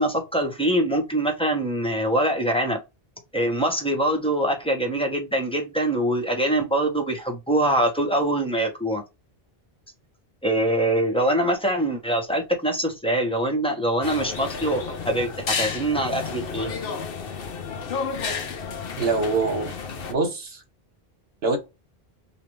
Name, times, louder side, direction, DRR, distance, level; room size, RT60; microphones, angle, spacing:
voice 1, 0.0-2.8 3.3-9.0 10.4-16.7, right 1 dB, 5° left, 0.9 m, -24 dB
sound 1, 14.0-20.1, left 5 dB, 65° left, 0.9 m, -31 dB
voice 2, 19.0-19.7 20.1-20.6 21.4-21.6, right 3 dB, 75° right, 1.2 m, -24 dB
4.9 x 2.8 x 3.1 m
omnidirectional pair, 1.1 m